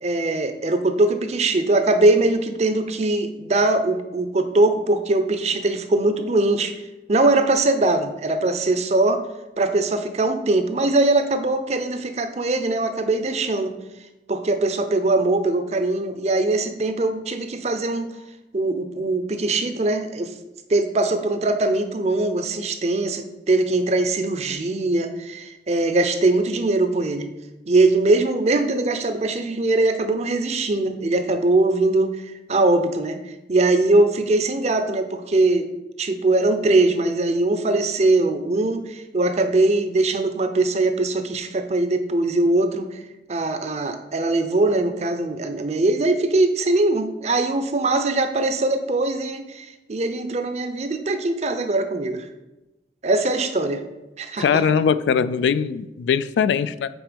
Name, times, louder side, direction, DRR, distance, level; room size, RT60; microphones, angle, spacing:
voice 1, 0.0-6.7 7.1-9.2 9.6-13.7 14.3-18.1 18.5-20.3 20.7-27.3 27.7-32.1 32.5-33.2 33.5-35.7 36.0-43.0 43.3-52.3 53.0-53.8 54.2-54.6, right 2 dB, 40° right, 9 dB, 0.5 m, -21 dB
voice 2, 54.4-56.9, left 6 dB, 85° left, 15 dB, 0.3 m, -21 dB
6.0 x 4.3 x 5.1 m, 1.0 s
head